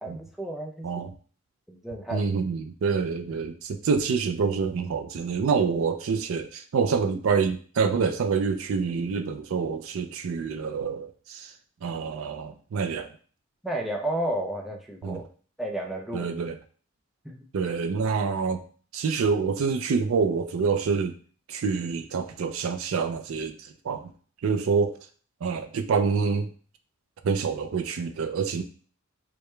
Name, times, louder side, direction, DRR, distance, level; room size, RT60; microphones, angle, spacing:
voice 1, 0.0-0.9 1.7-2.2 13.6-15.2 15.6-16.3 17.2-17.4, right 1 dB, ahead, -1 dB, 0.5 m, -32 dB
voice 2, 0.8-1.1 2.1-11.5 11.8-13.1 15.0-15.2 16.1-16.6 17.5-18.6 18.9-21.2 21.5-24.1 24.4-25.0 25.4-26.5 27.2-28.6, right 5 dB, 65° right, 7 dB, 0.4 m, -27 dB
4.7 x 2.2 x 3.2 m, 0.42 s
head